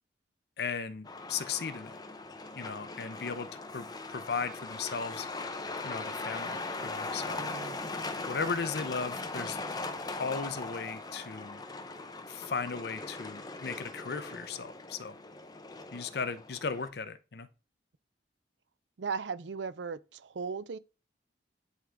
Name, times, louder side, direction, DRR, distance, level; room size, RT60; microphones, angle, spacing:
voice 1, 0.6-1.9 2.6-3.5 3.7-5.3 5.8-7.4 8.3-9.6 10.2-11.6 12.3-15.2 15.9-17.5, left 5 dB, 60° left, 0.6 m, -36 dB
Truck, 1.0-16.9, left 3 dB, 20° left, 0.6 m, -40 dB
voice 2, 7.3-7.8 19.0-20.8, right 5 dB, 85° right, 0.5 m, -37 dB
10.5 x 3.8 x 3.4 m
head